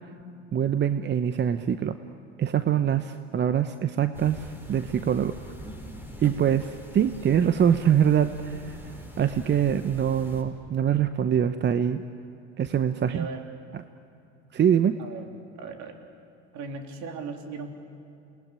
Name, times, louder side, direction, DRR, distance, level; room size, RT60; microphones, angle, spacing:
voice 1, 0.5-2.0 2.4-5.3 6.2-12.0 12.6-13.3 13.7-13.8 14.5-15.0, right 9 dB, 30° right, 10 dB, 0.9 m, -24 dB
sound 1, 4.1-10.4, right 1 dB, 5° right, 5.6 m, -43 dB
voice 2, 13.1-13.4 15.0-15.3 15.6-16.0 16.5-17.7, right 4 dB, 55° right, 4 dB, 3.5 m, -37 dB
28.5 x 19.0 x 9.9 m, 2.6 s
hypercardioid pair, 70°, 35 cm